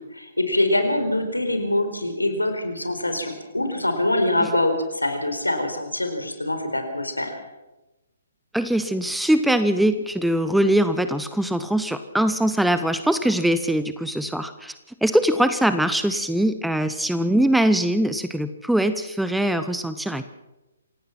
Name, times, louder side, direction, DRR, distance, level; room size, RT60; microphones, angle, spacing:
voice 1, 0.1-7.4, left 1 dB, 85° left, 6 dB, 4.4 m, -24 dB
voice 2, 8.5-14.7 15.0-20.2, right 1 dB, ahead, 11 dB, 0.9 m, -22 dB
26.5 x 17.5 x 5.9 m, 1.0 s
figure-of-eight pair, 130°, 0 cm